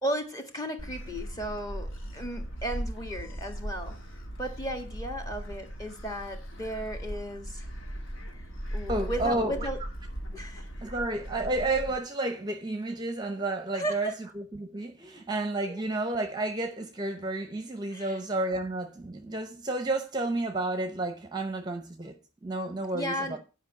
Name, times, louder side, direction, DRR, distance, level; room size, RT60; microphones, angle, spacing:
voice 1, 0.0-7.7 8.7-9.8 10.3-10.7 13.7-14.1 15.7-15.8 17.9-18.2 22.9-23.4, right 1 dB, 15° left, 1.7 m, -35 dB
Gull seagull, 0.8-12.0, equal, 70° left, 2.1 m, -38 dB
voice 2, 8.9-9.7 10.8-23.4, right 2 dB, 20° right, 0.8 m, -31 dB
10.5 x 5.3 x 6.9 m
head